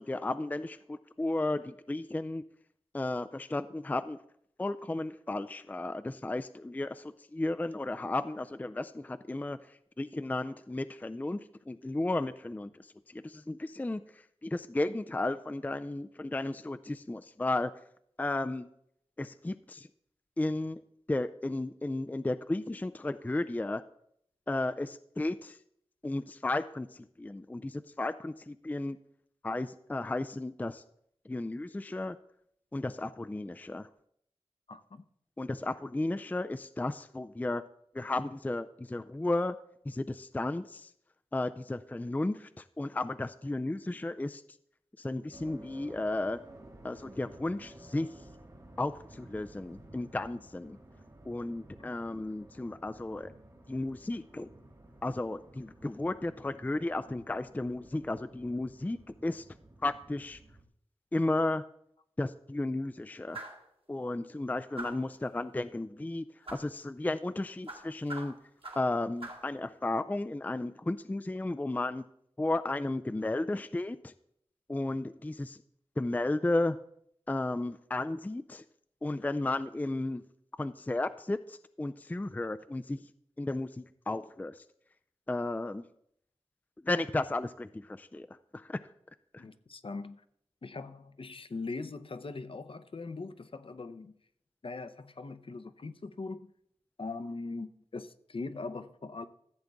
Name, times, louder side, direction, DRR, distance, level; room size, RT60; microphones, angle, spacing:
voice 1, 0.0-2.4 2.9-4.2 4.6-9.6 10.0-12.7 13.1-14.0 14.4-17.7 18.2-18.7 19.2-19.9 20.4-20.8 21.1-23.8 24.5-25.6 26.0-26.9 27.2-29.0 29.4-30.8 31.3-32.2 32.7-33.9 35.4-37.6 37.9-39.6 39.9-40.9 41.3-44.4 45.0-46.4 46.8-48.1 48.8-50.8 51.3-53.3 53.7-54.5 55.0-59.4 59.8-60.4 61.1-61.6 62.2-63.4 63.9-68.3 68.8-72.0 72.4-74.1 74.7-75.6 76.0-76.8 77.3-78.6 79.0-80.2 80.6-83.0 83.4-84.6 85.3-85.8 86.8-88.3 88.5-88.8 89.3-89.4, left 2 dB, 15° left, 0.4 m, -34 dB
voice 2, 34.7-35.0 51.8-51.9 89.4-90.2 90.6-94.1 94.6-96.5 97.0-99.3, left 3 dB, 55° left, 0.7 m, -41 dB
sound 1, 45.3-60.6, right 1 dB, 35° right, 1.7 m, -54 dB
sound 2, 63.3-63.7 64.8-65.1 66.5-66.7 67.7-68.9 69.2-69.5, right 2 dB, 60° right, 2.0 m, -43 dB
14.5 x 7.8 x 3.5 m
wide cardioid pair, 80°, 11 cm